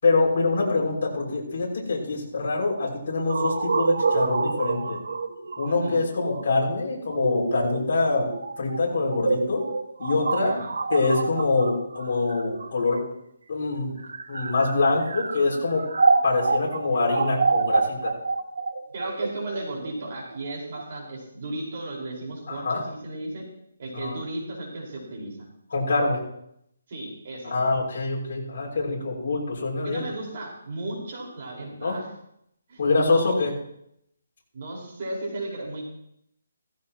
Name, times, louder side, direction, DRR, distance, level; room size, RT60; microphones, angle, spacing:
voice 1, 0.0-5.0 5.6-8.3 8.6-9.6 10.0-10.5 10.9-13.0 13.5-13.9 14.3-15.9 16.2-18.1 22.5-22.8 23.9-24.2 25.7-26.2 27.4-30.1 31.8-32.0 32.8-33.5, left 3 dB, 45° left, -4 dB, 6.1 m, -25 dB
sound 1, 3.3-13.1 13.9-20.8, right 4 dB, 80° right, 1.2 m, -27 dB
voice 2, 5.6-6.0 10.4-10.7 18.9-23.4 23.8-25.4 26.9-27.5 29.8-32.1 32.7-33.4 34.5-35.8, right 2 dB, 40° right, -2 dB, 5.0 m, -35 dB
17.0 x 15.5 x 3.1 m, 0.75 s
hypercardioid pair, 170°, 0 cm